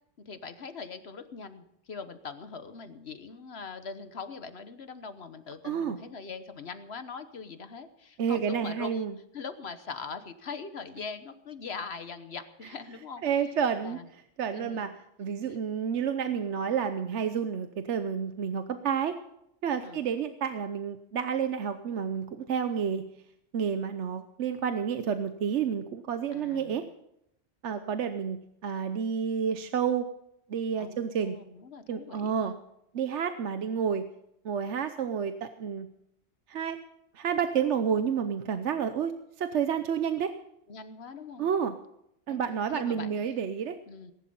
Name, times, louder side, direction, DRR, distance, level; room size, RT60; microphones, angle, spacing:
voice 1, 0.2-9.1 9.3-13.2 13.8-14.1 14.5-14.9 15.5-15.6 19.8-20.0 26.3-26.8 30.8-32.6 40.7-41.5 42.3-42.4 42.7-43.2 43.9-44.1, left 5 dB, 60° left, 10 dB, 1.3 m, -42 dB
voice 2, 5.6-6.0 8.2-9.2 13.2-14.0 14.4-14.9 15.2-19.2 19.6-23.1 23.5-26.8 27.6-30.1 30.5-31.4 31.9-32.6 32.9-34.1 34.4-35.9 36.5-36.8 37.1-39.1 39.4-40.3 41.4-41.8 42.3-43.8, right 7 dB, 75° right, 9 dB, 1.1 m, -30 dB
19.0 x 11.0 x 5.4 m, 0.77 s
omnidirectional pair, 1.2 m